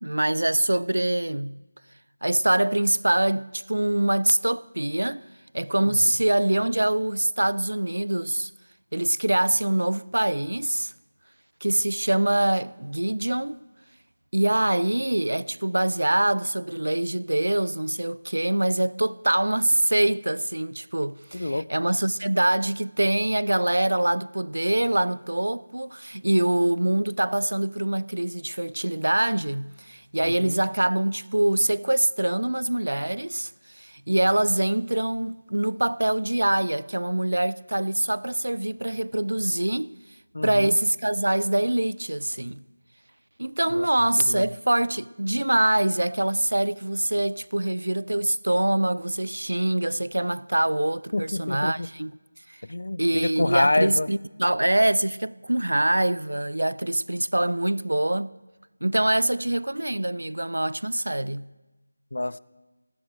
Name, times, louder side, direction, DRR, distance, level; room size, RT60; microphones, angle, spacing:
voice 1, 0.0-1.6 2.2-5.2 5.5-8.5 8.9-10.9 11.6-13.6 14.3-39.9 40.4-42.6 43.4-52.1 52.5-52.6 53.0-58.4 58.8-61.5, right 1 dB, 75° right, 0.4 m, -24 dB
voice 2, 21.3-21.7 30.2-30.6 40.3-40.8 43.7-43.9 44.2-44.5 51.1-51.9 52.7-54.1 62.1-62.4, left 2 dB, 65° left, 0.5 m, -27 dB
19.0 x 18.5 x 3.4 m
figure-of-eight pair, 165°, 0 cm